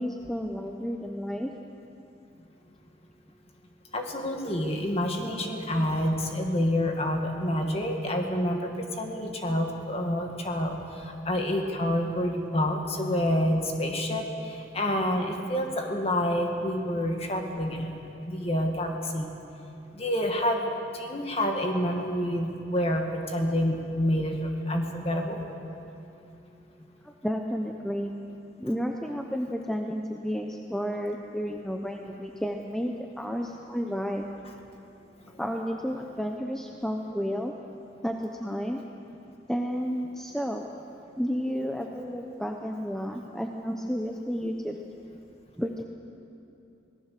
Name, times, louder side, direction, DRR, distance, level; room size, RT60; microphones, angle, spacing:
voice 1, 0.0-1.5 27.0-28.1 28.6-34.3 35.4-37.5 38.0-38.8 39.5-40.7 41.2-44.7 45.6-45.8, equal, 5° left, 2 dB, 0.8 m, -31 dB
voice 2, 3.9-8.7 9.0-17.9 18.3-19.3 20.0-25.4, left 1 dB, 30° left, 2 dB, 2.1 m, -28 dB
25.0 x 18.5 x 6.7 m, 2.8 s
head